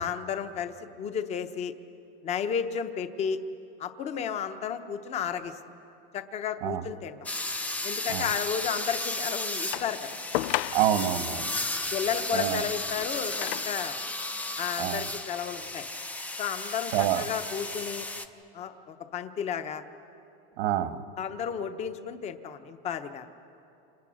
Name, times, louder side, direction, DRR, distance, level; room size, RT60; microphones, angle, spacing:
voice 1, 0.0-1.7 2.2-3.4 3.8-5.6 6.1-7.3 7.8-10.2 11.9-14.0 14.6-15.8 16.4-18.1 18.5-19.8 21.2-23.3, left 8 dB, 20° left, 10 dB, 0.9 m, -33 dB
sound 1, 7.3-18.3, left 2 dB, 5° left, 0.5 m, -34 dB
sound 2, 9.7-11.1 12.7-13.9 14.7-14.8, left 17 dB, 70° left, 0.5 m, -34 dB
voice 2, 10.7-11.5 12.3-12.6 14.8-15.1 16.9-17.2 20.6-21.0, right 12 dB, 75° right, 9 dB, 1.5 m, -27 dB
30.0 x 27.5 x 6.3 m, 2.8 s
supercardioid pair, 175°, 29 cm